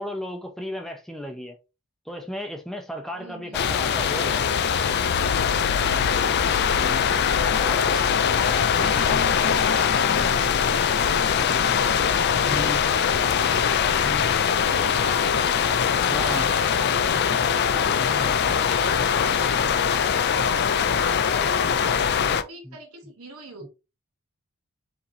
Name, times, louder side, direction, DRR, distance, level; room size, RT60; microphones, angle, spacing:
voice 1, 0.0-1.6 2.1-4.4 6.7-7.1 7.6-7.8 9.1-9.2 12.5-12.8 14.0-14.2 16.1-16.5 18.1-18.3 20.0-20.1 22.6-22.8 23.6-23.7, left 1 dB, ahead, 0.7 m, -35 dB
voice 2, 3.1-3.8 5.8-7.5 7.8-9.6 9.9-23.7, right 3 dB, 85° right, 1.2 m, -44 dB
sound 1, 3.5-22.4, left 7 dB, 50° left, 0.4 m, -22 dB
4.9 x 3.2 x 2.7 m
head